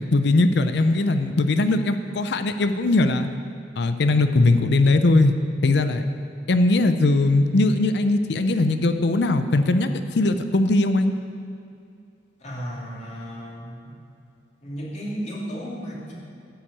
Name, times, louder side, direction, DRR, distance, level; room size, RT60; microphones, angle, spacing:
voice 1, 0.1-3.3 3.8-5.3 5.6-6.0 6.5-11.1, left 2 dB, 65° left, 9 dB, 0.5 m, -20 dB
voice 2, 0.8-1.1 12.4-13.9 14.6-16.1, equal, 40° left, -5 dB, 2.7 m, -34 dB
11.0 x 6.1 x 8.1 m, 2.6 s
head